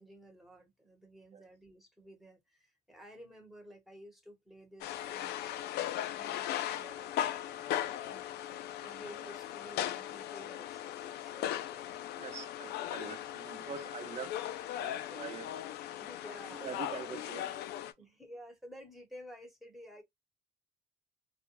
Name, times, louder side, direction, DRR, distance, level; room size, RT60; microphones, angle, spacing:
voice 1, 0.0-12.3 16.0-16.9 18.0-20.0, equal, ahead, 1.1 m, -53 dB
sound 1, 4.8-17.9, left 12 dB, 75° left, 0.4 m, -38 dB
voice 2, 12.2-14.4 14.8-15.8 16.5-17.7, right 6 dB, 40° right, 0.7 m, -45 dB
2.4 x 2.1 x 2.9 m
cardioid pair, 110°, 17 cm